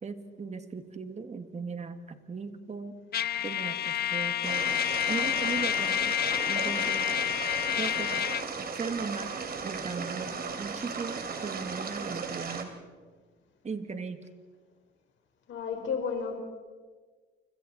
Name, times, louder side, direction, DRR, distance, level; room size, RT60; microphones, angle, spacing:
voice 1, 0.0-3.0 3.4-6.2 6.5-7.1 7.8-8.2 8.6-9.3 9.6-12.7 13.6-14.2, right 4 dB, 35° right, 8 dB, 2.0 m, -38 dB
Trumpet, 3.1-8.5, left 11 dB, 55° left, 0.7 m, -29 dB
sound 1, 4.4-12.6, right 5 dB, 50° right, 3.1 m, -36 dB
voice 2, 15.5-16.4, left 6 dB, 70° left, 4 dB, 4.8 m, -32 dB
29.5 x 25.5 x 4.2 m, 1.4 s
cardioid pair, 90°, 20 cm